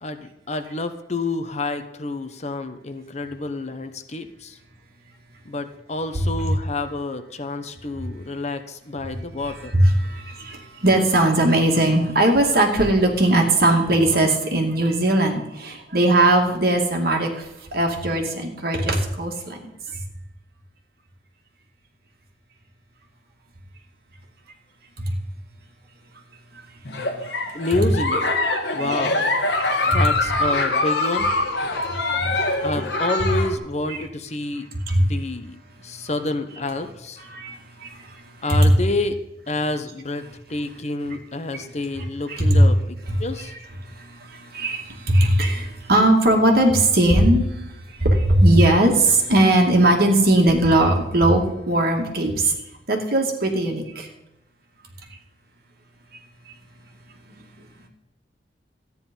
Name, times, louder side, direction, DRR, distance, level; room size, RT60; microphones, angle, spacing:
voice 1, 0.0-4.6 5.4-9.8 27.5-28.3 28.7-29.3 29.9-31.3 32.6-34.6 35.0-37.2 38.4-39.2 39.5-40.2 40.5-42.8 43.2-43.5, left 2 dB, 40° left, 9 dB, 0.9 m, -28 dB
voice 2, 9.7-17.5 17.7-19.6 25.0-25.1 27.3-27.4 28.8-29.0 29.5-30.3 31.8-32.7 33.9-34.0 34.9-35.1 37.2-38.7 41.5-41.6 42.3-42.6 43.4-47.7 48.0-52.5 52.9-54.1, right 1 dB, 60° right, 2 dB, 2.4 m, -19 dB
Giggle, 26.9-33.6, left 2 dB, 70° left, 1.7 m, -24 dB
13.5 x 9.6 x 5.4 m, 0.92 s
head